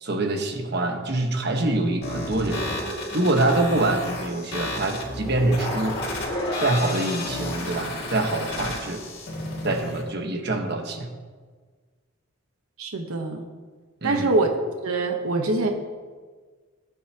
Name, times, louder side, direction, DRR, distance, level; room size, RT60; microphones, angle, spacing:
voice 1, 0.0-2.7 3.1-6.0 6.6-9.0 9.6-11.1 14.0-14.3, right 2 dB, 50° right, 4 dB, 1.3 m, -25 dB
sound 1, 2.0-10.0, left 2 dB, 50° left, 2.4 m, -33 dB
sound 2, 2.5-9.5, equal, 25° left, 2.5 m, -36 dB
voice 2, 12.8-13.4 14.0-14.6 14.8-15.7, right 3 dB, 85° right, 3 dB, 1.1 m, -24 dB
19.0 x 9.5 x 2.9 m, 1.5 s
head